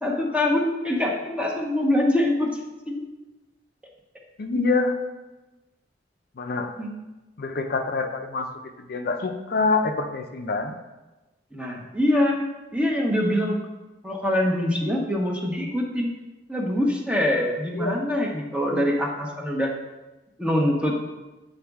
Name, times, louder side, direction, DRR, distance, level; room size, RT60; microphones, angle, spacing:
voice 1, 0.0-2.5 2.9-3.0 6.8-6.9 11.5-12.4 12.7-13.6 14.0-16.1 16.5-19.7 20.4-20.9, left 1 dB, 5° right, 0 dB, 0.8 m, -24 dB
voice 2, 4.4-5.0 6.4-6.7 7.4-8.5 8.9-10.8 17.7-18.0 18.7-18.9, left 3 dB, 55° left, 5 dB, 0.5 m, -26 dB
8.5 x 4.0 x 3.5 m, 1.1 s
head